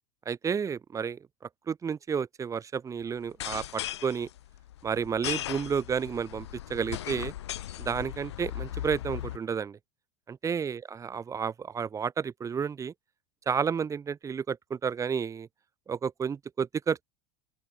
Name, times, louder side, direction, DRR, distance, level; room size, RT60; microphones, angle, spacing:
voice 1, 0.3-1.2 1.7-4.3 4.8-7.3 7.8-9.8 10.3-12.9 13.5-15.5 15.9-17.0, right 6 dB, 25° right, 0.8 m, -31 dB
sound 1, 3.2-9.4, left 13 dB, 80° left, 0.4 m, -37 dB
open air
hypercardioid pair, 80°, 14 cm